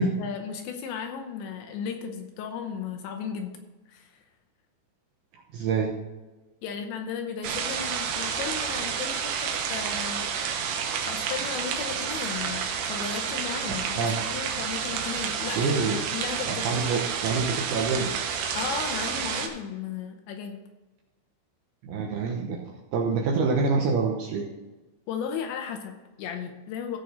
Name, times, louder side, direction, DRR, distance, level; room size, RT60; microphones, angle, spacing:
voice 1, 0.0-3.6 3.9-4.2 6.6-10.3 11.1-16.7 18.5-20.6 25.1-27.0, left 7 dB, 80° left, 5 dB, 2.9 m, -35 dB
voice 2, 5.5-5.9 13.9-14.1 15.6-16.0 16.5-18.1 21.8-22.6 22.9-24.5, right 4 dB, 70° right, -1 dB, 2.5 m, -26 dB
sound 1, 7.4-19.5, right 7 dB, 90° right, 3.7 m, -30 dB
15.5 x 6.3 x 4.3 m, 1.1 s
omnidirectional pair, 5.7 m